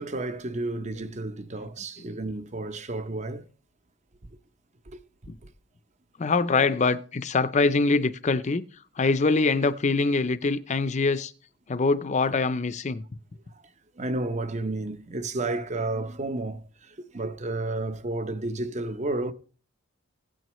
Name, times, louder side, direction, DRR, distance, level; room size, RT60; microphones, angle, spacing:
voice 1, 0.0-3.5 4.9-5.0 5.4-5.5 13.5-13.6 14.0-19.3, right 2 dB, 35° right, 0.7 m, -31 dB
voice 2, 6.2-8.6 9.0-11.3 11.7-13.0 17.7-17.8, left 3 dB, 35° left, 0.5 m, -24 dB
16.5 x 9.1 x 3.1 m
head